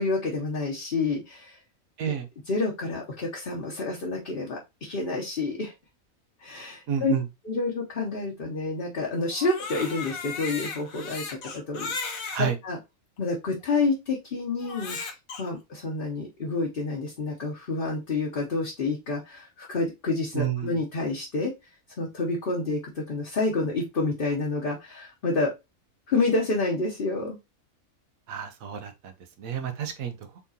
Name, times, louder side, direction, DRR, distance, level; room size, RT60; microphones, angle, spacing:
voice 1, 0.0-1.6 2.0-2.1 2.5-5.7 6.4-7.1 7.4-12.8 13.2-15.1 15.4-21.5 22.0-25.5 26.1-27.4, left 3 dB, 45° left, 1.0 m, -29 dB
voice 2, 6.9-7.2 12.3-12.6 20.3-20.7 28.3-30.5, right 8 dB, 85° right, 1.3 m, -30 dB
Crying sobbing, 9.3-12.4 13.2-13.3 14.6-15.4, left 4 dB, 90° left, 1.4 m, -35 dB
4.7 x 3.7 x 2.8 m
omnidirectional pair, 1.4 m